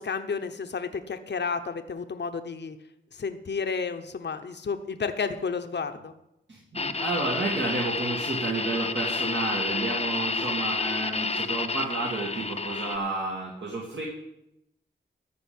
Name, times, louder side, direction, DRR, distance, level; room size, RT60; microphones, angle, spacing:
voice 1, 0.0-2.8 3.1-6.1, left 5 dB, 60° left, 8 dB, 0.9 m, -31 dB
voice 2, 6.5-14.0, right 2 dB, 65° right, -4 dB, 2.4 m, -31 dB
sound 1, 6.8-13.0, left 3 dB, 30° left, 0.7 m, -30 dB
14.0 x 5.1 x 8.7 m, 0.85 s
wide cardioid pair, 70°, 20 cm